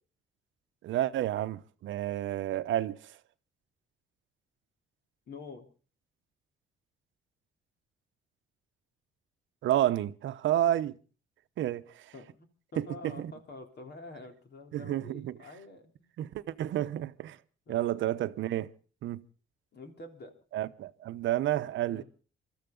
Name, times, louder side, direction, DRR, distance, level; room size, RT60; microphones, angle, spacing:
voice 1, 0.8-3.0 9.6-11.0 11.6-12.0 12.8-13.3 14.7-15.4 16.2-17.4 17.7-18.7 19.0-19.2 20.5-22.0, right 13 dB, 75° right, 0.8 m, -30 dB
voice 2, 5.3-5.6 12.1-15.9 17.7-17.9 19.7-20.3 21.8-22.0, left 3 dB, 55° left, 3.4 m, -47 dB
25.0 x 13.5 x 3.8 m
cardioid pair, 90°, 20 cm